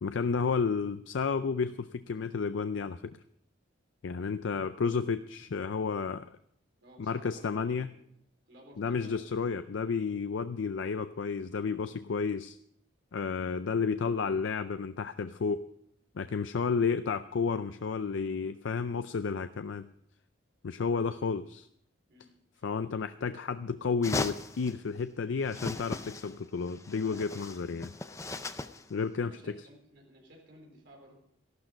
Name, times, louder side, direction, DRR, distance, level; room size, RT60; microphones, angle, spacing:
voice 1, 0.0-3.2 4.0-6.3 7.0-7.9 8.8-12.6 13.1-15.7 16.2-19.9 20.6-21.7 22.6-27.9 28.9-29.6, left 5 dB, 75° left, 11 dB, 0.4 m, -31 dB
voice 2, 6.8-8.0 8.5-9.3 22.1-22.9 29.1-31.2, equal, 60° right, 0 dB, 4.1 m, -56 dB
sound 1, 24.0-24.7 25.5-26.4 26.7-28.9, left 2 dB, 15° left, 0.5 m, -37 dB
14.0 x 12.0 x 5.1 m, 0.72 s
head